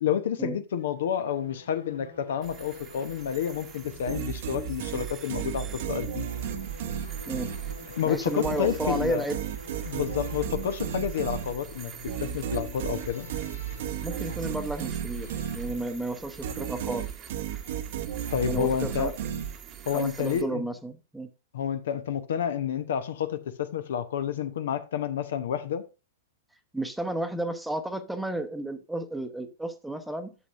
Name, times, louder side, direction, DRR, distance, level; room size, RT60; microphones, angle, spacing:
voice 1, 0.0-6.3 8.0-9.3 9.8-13.3 18.3-19.1 19.9-20.6 21.5-25.8, left 8 dB, 55° left, 0.9 m, -29 dB
sound 1, 0.8-19.8, left 1 dB, 75° left, 2.8 m, -50 dB
sound 2, 2.4-20.4, right 9 dB, 25° right, 1.1 m, -47 dB
sound 3, 4.0-8.0 8.4-16.0 16.4-19.9, right 9 dB, 50° right, 0.9 m, -34 dB
voice 2, 8.0-9.4 10.0-10.1 14.0-17.0 18.5-19.1 19.9-21.3 26.7-30.3, right 2 dB, 5° right, 1.0 m, -32 dB
11.0 x 7.5 x 2.6 m
figure-of-eight pair, 105°, 0 cm